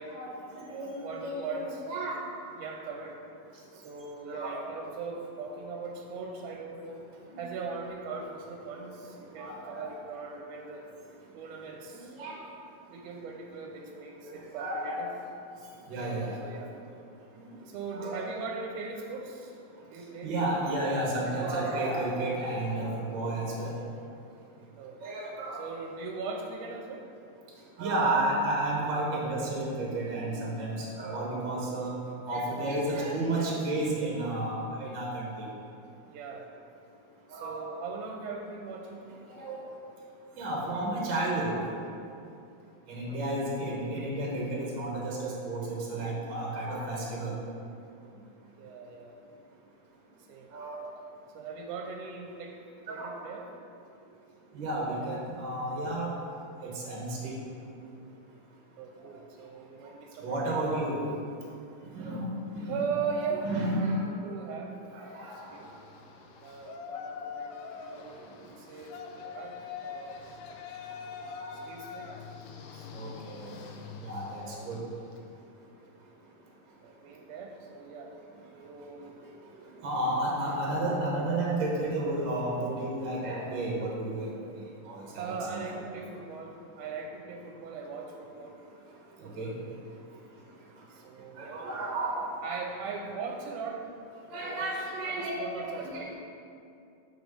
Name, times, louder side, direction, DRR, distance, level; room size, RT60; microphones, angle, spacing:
voice 1, 0.1-0.9 1.2-2.1 4.3-4.6 9.4-9.9 12.2-12.4 14.3-15.0 15.9-16.3 17.9-18.2 20.2-23.7 25.0-25.6 27.8-31.9 32.3-35.5 37.3-37.6 39.4-39.6 40.4-41.5 42.9-47.3 50.5-50.8 52.9-53.1 54.5-56.1 56.6-57.4 60.2-61.0 61.9-62.3 62.5-62.7 63.4-64.0 64.9-65.3 71.4-71.5 72.9-73.5 74.0-74.8 79.8-84.3 84.9-85.6 89.4-89.5 91.4-92.2 94.3-96.1, right 2 dB, 55° right, -3 dB, 1.4 m, -32 dB
voice 2, 1.0-1.8 2.6-3.3 3.7-7.1 7.4-10.9 11.3-12.1 12.9-15.1 16.4-16.7 17.7-19.6 19.8-20.4 24.8-25.0 25.5-27.1 36.1-36.5 37.3-39.3 43.1-43.5 48.6-49.2 50.3-50.5 51.4-52.6 52.9-53.5 58.8-60.9 62.6-64.8 65.3-65.7 66.4-70.2 71.5-72.3 72.7-72.9 74.3-74.7 76.8-78.2 78.5-79.2 81.0-81.1 85.2-88.6 90.9-91.7 92.4-93.9 94.3-96.2, right 4 dB, 85° right, 2 dB, 2.1 m, -40 dB
Yell, 65.1-75.3, left 6 dB, 80° left, 2.1 m, -44 dB
6.2 x 5.4 x 6.7 m, 2.6 s
omnidirectional pair, 3.7 m